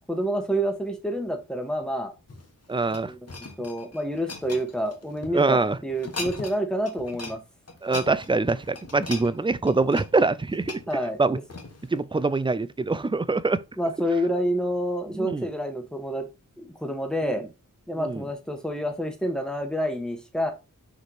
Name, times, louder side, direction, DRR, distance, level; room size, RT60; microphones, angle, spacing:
voice 1, 0.1-2.1 3.0-3.1 3.6-7.4 10.9-11.4 13.8-16.2 16.6-17.5 17.9-20.5, equal, ahead, 1.3 m, -28 dB
sound 1, 2.2-5.4 5.9-6.6 6.8-7.4 7.7-11.9 12.5-12.7, left 3 dB, 50° left, 1.3 m, -39 dB
voice 2, 2.7-3.1 5.3-5.8 7.8-10.8 11.2-11.4 11.9-13.6 15.1-15.5 17.2-17.3 18.0-18.3, right 3 dB, 15° right, 0.4 m, -24 dB
6.6 x 3.5 x 4.7 m
wide cardioid pair, 100°, 33 cm